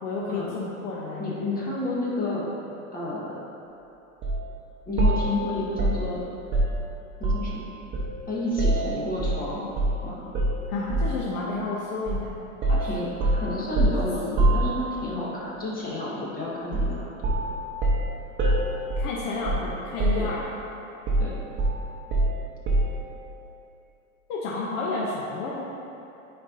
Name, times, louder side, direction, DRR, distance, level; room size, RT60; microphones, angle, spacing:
voice 1, 0.0-1.5 10.7-12.3 13.8-14.0 14.3-14.4 19.0-20.4 24.3-25.6, left 3 dB, 60° left, -4 dB, 0.9 m, -31 dB
voice 2, 1.2-2.5 2.9-3.4 4.9-6.2 7.2-7.8 8.3-9.6 10.0-10.3 12.6-17.1 20.2-20.3 21.2-21.3, left 2 dB, 20° left, -6 dB, 1.4 m, -30 dB
sound 1, 4.2-4.4 5.0-7.6 7.9-9.4 9.8-10.0 10.3-11.2 12.1-12.3 12.6-15.2 16.7-17.0 17.2-19.7 20.0-20.6 21.1-23.0, right 1 dB, 30° right, 0.9 m, -25 dB
8.8 x 4.5 x 2.7 m, 2.8 s
supercardioid pair, 120°, 40 cm